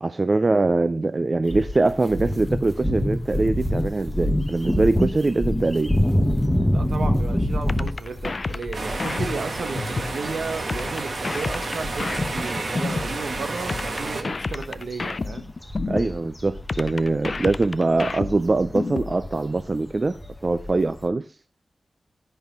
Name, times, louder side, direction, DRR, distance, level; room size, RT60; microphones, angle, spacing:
voice 1, 0.0-5.9 15.9-21.3, right 2 dB, 35° right, 0.4 m, -23 dB
sound 1, 1.5-12.5 12.8-13.0 13.3-21.1, left 1 dB, 5° left, 1.1 m, -26 dB
voice 2, 6.7-15.5, right 4 dB, 80° right, 1.4 m, -33 dB
sound 2, 7.7-10.2 10.7-13.2 13.7-16.2 16.7-19.2, left 3 dB, 45° left, 0.4 m, -30 dB
sound 3, 8.7-14.2, right 2 dB, 55° right, 1.6 m, -31 dB
10.5 x 5.4 x 6.1 m
wide cardioid pair, 125°, 0 cm